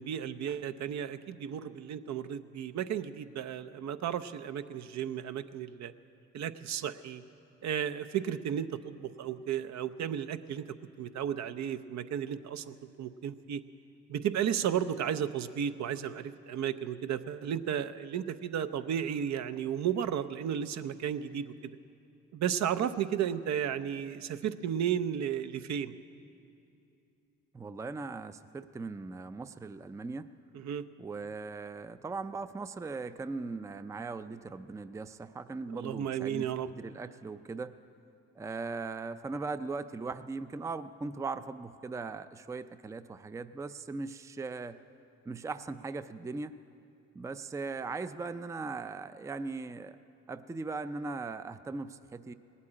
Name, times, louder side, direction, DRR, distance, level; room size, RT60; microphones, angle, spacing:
voice 1, 0.0-5.9 6.3-7.2 7.6-13.6 14.1-21.5 22.3-25.9 30.5-30.8 35.7-36.7, right 9 dB, 65° right, 11 dB, 0.6 m, -34 dB
voice 2, 27.5-30.3 31.0-37.7 38.4-44.8 45.3-46.5 47.1-50.0 50.3-52.3, right 3 dB, 10° right, 12 dB, 0.4 m, -39 dB
18.5 x 8.4 x 8.7 m, 2.7 s
cardioid pair, 90°, 30 cm